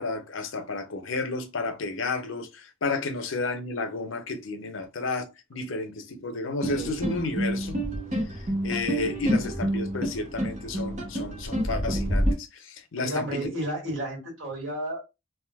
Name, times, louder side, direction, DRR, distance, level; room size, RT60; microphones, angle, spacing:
voice 1, 0.0-7.8 8.3-13.5, left 3 dB, 75° left, 0.6 m, -32 dB
sound 1, 6.6-12.3, right 1 dB, 35° right, 0.8 m, -28 dB
voice 2, 13.0-15.0, right 1 dB, 70° right, 1.9 m, -32 dB
3.6 x 2.6 x 2.2 m
head